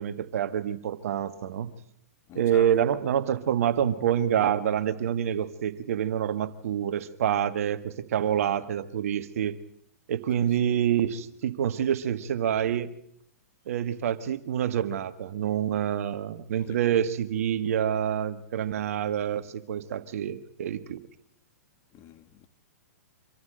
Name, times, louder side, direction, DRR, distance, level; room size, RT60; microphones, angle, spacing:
voice 1, 0.0-1.7 2.3-9.6 10.1-12.9 13.7-21.0, right 9 dB, 60° right, 1.5 m, -27 dB
voice 2, 2.3-2.7 8.4-8.7 10.4-10.6 16.5-17.0 21.9-22.5, left 11 dB, 30° left, 1.4 m, -47 dB
25.5 x 14.5 x 7.8 m
hypercardioid pair, 120°, 9 cm